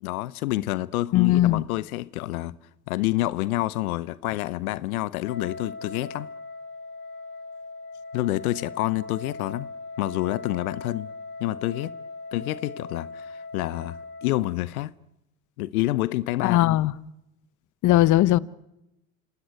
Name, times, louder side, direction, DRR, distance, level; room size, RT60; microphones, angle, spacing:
voice 1, 0.0-2.6 2.9-6.3 8.1-9.7 10.0-11.1 11.4-11.9 12.3-14.9 15.6-16.8, left 17 dB, 80° left, 0.8 m, -28 dB
voice 2, 1.1-1.6 16.4-16.9 17.8-18.4, left 15 dB, 45° left, 0.9 m, -19 dB
Wind instrument woodwind instrument, 5.2-14.6, left 3 dB, 60° left, 6.1 m, -40 dB
27.0 x 17.0 x 9.4 m
hypercardioid pair, 85°, 43 cm